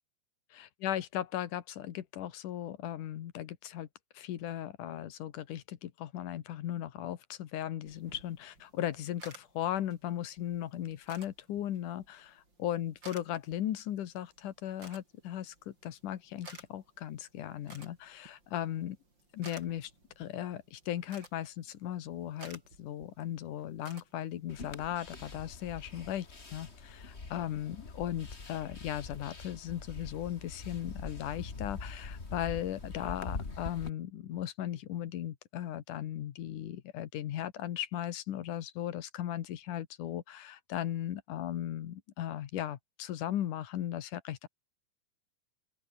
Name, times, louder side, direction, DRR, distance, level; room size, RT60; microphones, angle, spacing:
voice 1, 0.5-3.9 4.1-19.0 19.3-19.9 20.2-44.5, left 11 dB, 85° left, 3.0 m, -37 dB
sound 1, 7.8-24.8, right 2 dB, 35° right, 8.1 m, -56 dB
sound 2, 24.5-33.9, left 3 dB, 25° left, 2.2 m, -44 dB
open air
omnidirectional pair, 3.5 m